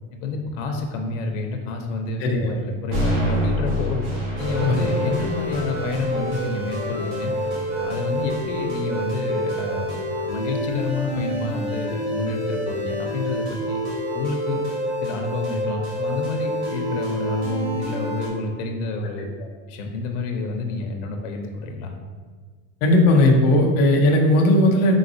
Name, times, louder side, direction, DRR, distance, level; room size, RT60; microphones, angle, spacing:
voice 1, 0.2-4.0 4.4-7.3 7.8-13.8 14.1-14.7 15.0-19.3 19.7-21.9, left 3 dB, 85° left, 3 dB, 0.6 m, -29 dB
voice 2, 2.2-2.5 4.7-4.8 22.8-24.9, left 1 dB, 30° left, 0 dB, 0.3 m, -17 dB
sound 1, 2.9-10.9, equal, 90° right, 1.5 m, -29 dB
sound 2, 4.4-18.3, equal, 40° right, 0.9 m, -28 dB
4.0 x 3.8 x 2.6 m, 1.5 s
supercardioid pair, 170°, 36 cm